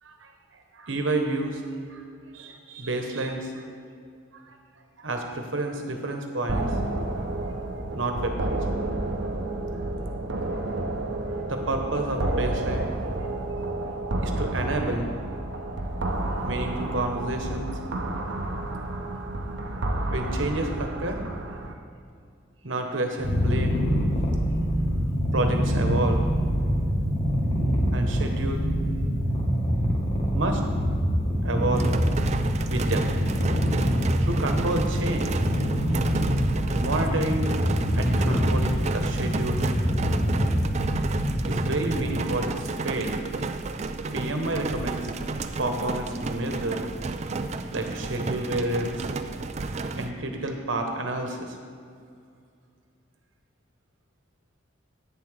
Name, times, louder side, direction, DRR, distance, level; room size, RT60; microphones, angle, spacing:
voice 1, 0.7-1.6 1.9-2.0 2.3-3.7 4.3-4.6 5.0-6.7 7.9-8.6 11.5-12.9 14.2-15.1 16.4-17.7 20.0-21.2 22.6-23.8 25.3-26.2 27.9-29.3 30.3-30.6 31.4-31.9 32.7-33.1 34.2-35.4 36.7-37.5 38.0-39.6 41.4-43.2 44.1-45.0 45.6-46.8 47.7-49.1 50.0-51.6, right 2 dB, 80° right, 4 dB, 1.2 m, -29 dB
sound 1, 6.5-21.7, right 2 dB, 65° right, 0.8 m, -30 dB
Purr, 23.2-42.5, equal, 35° left, 1.4 m, -25 dB
sound 2, 31.7-50.1, right 3 dB, 35° right, 0.4 m, -32 dB
11.0 x 9.0 x 3.4 m, 2.3 s
head